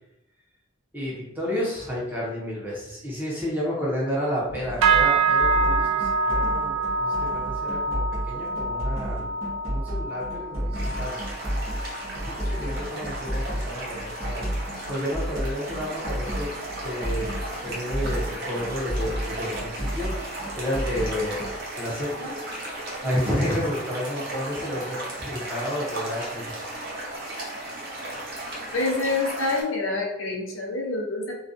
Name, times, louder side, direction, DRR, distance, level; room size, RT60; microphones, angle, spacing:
voice 1, 0.9-9.3 9.6-11.2 12.2-16.5 16.8-17.3 17.6-21.4 21.8-22.3 23.0-26.6, equal, 10° right, -5 dB, 0.6 m, -31 dB
sound 1, 4.5-21.6, equal, 30° left, 0.8 m, -32 dB
sound 2, 4.8-14.4 14.7-15.1 15.5-15.8 16.4-16.5, right 4 dB, 70° right, 0.3 m, -27 dB
sound 3, 10.7-29.6, right 1 dB, 50° right, 0.7 m, -35 dB
voice 2, 28.7-31.3, left 3 dB, 70° left, -1 dB, 0.7 m, -27 dB
2.3 x 2.2 x 2.5 m, 0.97 s
head